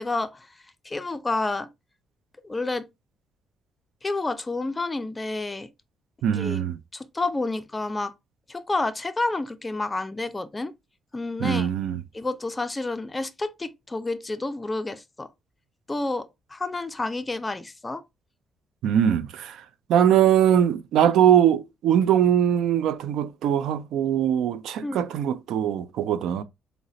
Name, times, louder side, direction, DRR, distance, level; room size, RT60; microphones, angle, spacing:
voice 1, 0.0-1.7 2.4-2.9 4.0-5.7 6.3-6.6 6.9-8.1 8.5-10.7 11.1-11.7 12.1-15.3 15.9-18.0 24.8-25.1, left 2 dB, 20° left, 0.3 m, -29 dB
voice 2, 6.2-6.8 11.4-12.0 18.8-19.6 19.9-26.4, right 9 dB, 80° right, 0.3 m, -21 dB
4.8 x 2.0 x 2.6 m
cardioid pair, 90°, 0 cm